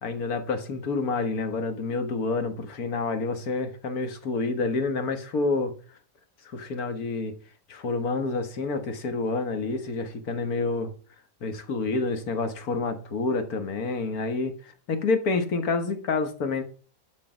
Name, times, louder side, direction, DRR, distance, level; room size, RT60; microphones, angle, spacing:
voice 1, 0.0-5.7 6.5-7.3 7.7-10.9 11.4-16.6, left 3 dB, 75° left, 8 dB, 1.8 m, -28 dB
11.5 x 4.7 x 4.9 m, 0.40 s
omnidirectional pair, 1.6 m